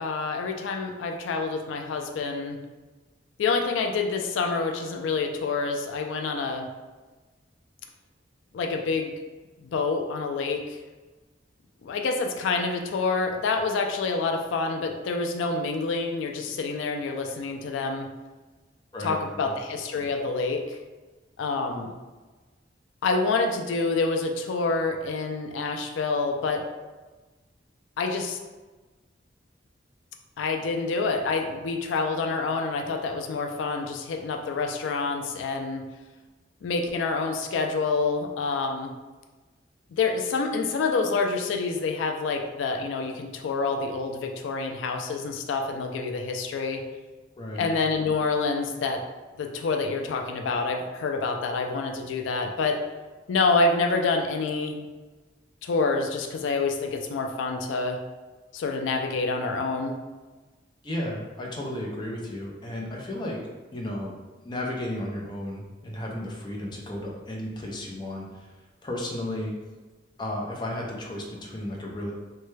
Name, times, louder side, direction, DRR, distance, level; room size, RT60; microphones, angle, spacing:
voice 1, 0.0-2.6 3.4-6.7 8.5-9.1 9.6-10.8 11.8-18.1 19.0-20.8 21.4-21.9 23.0-26.7 28.0-28.4 30.4-35.8 36.6-38.9 40.0-46.8 47.5-49.0 49.4-52.8 53.3-54.8 55.6-58.0 58.5-60.0, left 4 dB, 90° left, 3 dB, 0.3 m, -27 dB
voice 2, 18.9-19.5 47.4-47.7 60.8-63.4 63.7-64.1 64.4-69.5 70.2-72.1, left 1 dB, 25° left, -2 dB, 0.5 m, -34 dB
3.2 x 2.2 x 3.1 m, 1.2 s
head